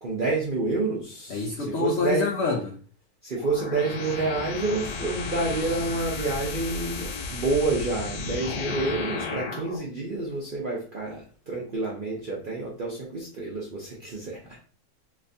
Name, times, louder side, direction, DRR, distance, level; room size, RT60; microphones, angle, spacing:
voice 1, 0.0-2.3 3.2-14.6, right 3 dB, 55° right, -3 dB, 0.6 m, -29 dB
voice 2, 1.3-2.7, left 4 dB, 70° left, 0 dB, 0.6 m, -26 dB
sound 1, 3.4-9.8, left 4 dB, 90° left, 1.3 m, -33 dB
3.3 x 3.3 x 2.6 m, 0.39 s
omnidirectional pair, 1.8 m